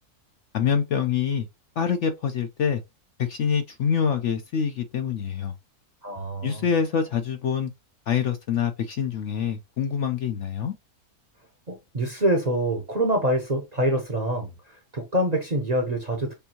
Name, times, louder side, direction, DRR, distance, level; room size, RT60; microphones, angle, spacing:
voice 1, 0.5-1.5 1.8-2.8 3.2-5.5 6.4-7.7 8.1-10.7, left 7 dB, 65° left, 0.8 m, -25 dB
voice 2, 6.0-6.6 11.7-14.5 14.9-16.3, right 1 dB, 35° right, 0.8 m, -25 dB
6.9 x 2.6 x 2.9 m
omnidirectional pair, 1.6 m